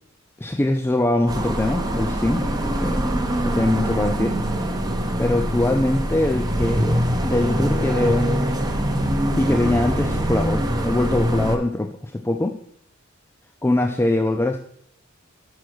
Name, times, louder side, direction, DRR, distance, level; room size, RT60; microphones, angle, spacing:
voice 1, 0.4-3.0 3.4-4.4 5.2-8.3 9.4-12.6 13.6-14.6, left 1 dB, 10° left, 5 dB, 0.3 m, -22 dB
sound 1, 1.3-11.6, right 1 dB, 20° right, 0.9 m, -23 dB
6.4 x 5.6 x 6.0 m, 0.67 s
head